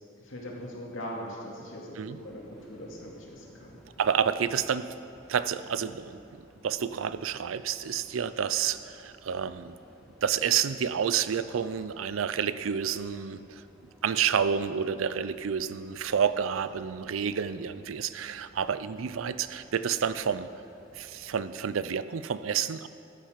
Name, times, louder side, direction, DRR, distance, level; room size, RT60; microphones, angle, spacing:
voice 1, 0.2-3.7, equal, 80° left, -3 dB, 2.4 m, -41 dB
sound 1, 2.1-21.5, equal, ahead, 2.0 m, -56 dB
voice 2, 4.0-4.9 5.3-6.2 6.6-9.7 10.2-13.6 14.0-20.5 20.9-22.9, right 7 dB, 90° right, 14 dB, 0.5 m, -29 dB
14.0 x 8.7 x 5.1 m, 2.5 s
head